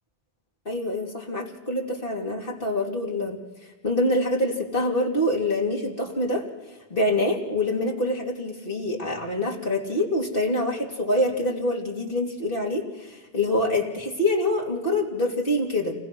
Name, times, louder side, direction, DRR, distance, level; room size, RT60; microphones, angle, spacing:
voice 1, 0.6-3.4 3.8-6.4 6.9-15.9, left 1 dB, 60° left, 0 dB, 3.0 m, -25 dB
29.0 x 19.5 x 6.1 m, 1.3 s
omnidirectional pair, 1.0 m